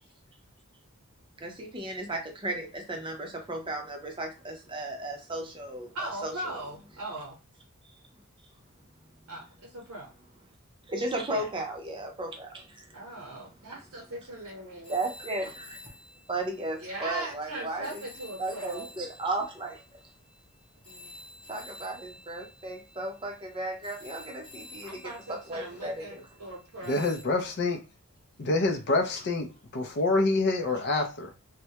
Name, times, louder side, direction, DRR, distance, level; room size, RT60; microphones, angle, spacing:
voice 1, 1.4-6.6 10.9-13.8 14.9-15.9 16.3-18.0 18.4-20.0 21.5-26.3, right 2 dB, 25° right, 0.6 m, -35 dB
voice 2, 5.9-7.4 9.3-10.1 11.3-11.5 12.9-15.0 16.8-18.9 20.9-21.1 24.8-27.1, right 1 dB, 70° right, 0.8 m, -39 dB
sound 1, 14.8-17.3 17.8-26.3 26.8-27.2, left 2 dB, 20° left, 0.8 m, -50 dB
voice 3, 26.8-27.8 28.4-31.3, left 2 dB, 50° left, 0.5 m, -27 dB
2.2 x 2.1 x 2.8 m
head